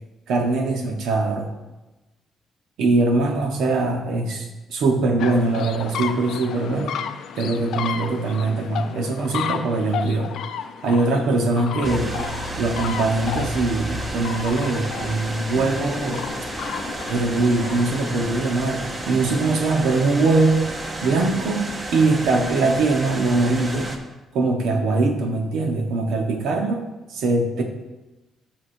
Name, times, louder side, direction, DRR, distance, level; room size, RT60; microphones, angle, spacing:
voice 1, 0.3-1.5 2.8-7.0 7.4-10.3 10.8-12.1 12.6-16.2 17.1-20.6 21.0-23.9 24.3-26.8 27.1-27.6, right 3 dB, 75° right, 3 dB, 1.1 m, -22 dB
sound 1, 5.2-18.3, left 8 dB, 70° left, 0.5 m, -33 dB
sound 2, 11.8-24.0, right 2 dB, 20° right, 0.7 m, -32 dB
Strum, 15.5-20.2, left 3 dB, 30° left, 1.9 m, -43 dB
13.0 x 6.0 x 2.7 m, 1.1 s
cardioid pair, 170°, 0 cm